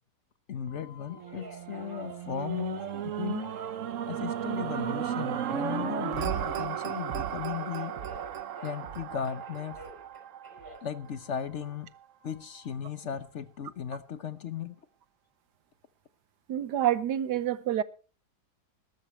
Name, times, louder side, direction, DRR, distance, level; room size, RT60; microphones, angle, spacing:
voice 1, 0.5-3.5 4.1-8.0 8.6-9.8 10.8-11.9 12.2-14.8, left 8 dB, 50° left, 1.0 m, -36 dB
Telephone, 0.7-5.0 5.5-8.9 9.2-11.7 12.2-12.7, right 1 dB, 10° right, 4.9 m, -49 dB
sound 1, 1.1-11.4 12.0-12.1, right 9 dB, 55° right, 1.0 m, -35 dB
voice 2, 16.5-17.8, right 11 dB, 85° right, 1.4 m, -27 dB
21.0 x 12.5 x 3.2 m
omnidirectional pair, 1.8 m